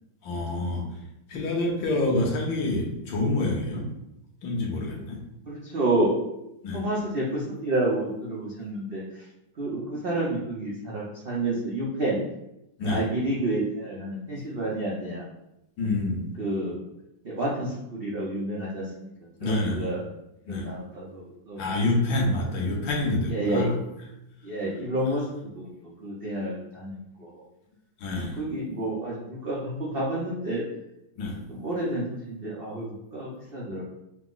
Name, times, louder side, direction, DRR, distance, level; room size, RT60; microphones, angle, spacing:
voice 1, 0.2-0.9 1.3-3.8 4.4-5.2 6.6-6.8 12.8-13.0 14.4-14.5 15.8-16.3 19.4-19.8 20.5-20.8 21.6-23.8 28.0-28.4 31.2-31.4, left 2 dB, 70° left, -1 dB, 1.6 m, -27 dB
voice 2, 5.5-6.2 6.7-9.2 9.6-12.2 12.8-15.2 16.4-16.8 17.2-19.1 19.4-20.0 20.5-21.6 23.3-23.7 24.4-25.7 26.0-27.4 28.4-30.7 31.5-33.8, right 1 dB, 85° right, -5 dB, 0.5 m, -29 dB
5.7 x 2.0 x 3.8 m, 0.88 s
omnidirectional pair, 2.2 m